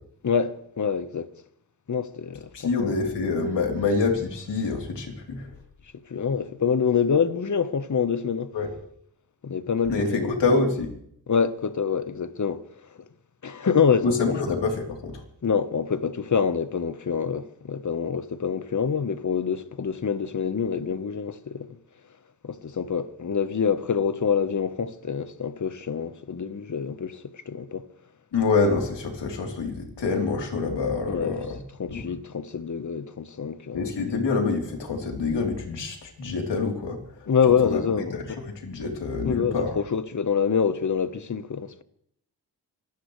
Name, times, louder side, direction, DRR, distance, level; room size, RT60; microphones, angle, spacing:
voice 1, 0.2-1.3 1.9-2.9 6.1-8.5 9.4-10.3 11.3-12.7 13.4-14.1 15.4-21.8 22.4-27.9 31.1-31.4 31.8-33.9 37.3-38.4 39.2-41.8, left 6 dB, 45° left, 1.2 m, -26 dB
voice 2, 2.5-5.5 8.5-8.7 9.9-10.9 14.0-15.2 28.3-31.6 31.9-32.1 33.7-37.0 37.5-37.8 38.1-39.8, left 4 dB, 80° left, 3.6 m, -26 dB
25.0 x 17.0 x 3.3 m
cardioid pair, 70°, 42 cm